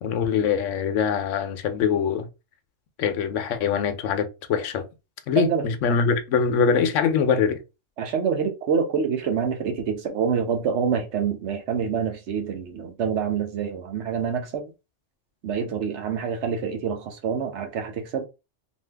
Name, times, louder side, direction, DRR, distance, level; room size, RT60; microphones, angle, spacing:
voice 1, 0.0-2.3 3.0-4.8 5.3-7.6, left 6 dB, 85° left, 1.0 m, -23 dB
voice 2, 5.4-5.7 8.0-14.7 15.4-18.3, right 6 dB, 70° right, 1.0 m, -26 dB
2.7 x 2.6 x 3.2 m
omnidirectional pair, 1.3 m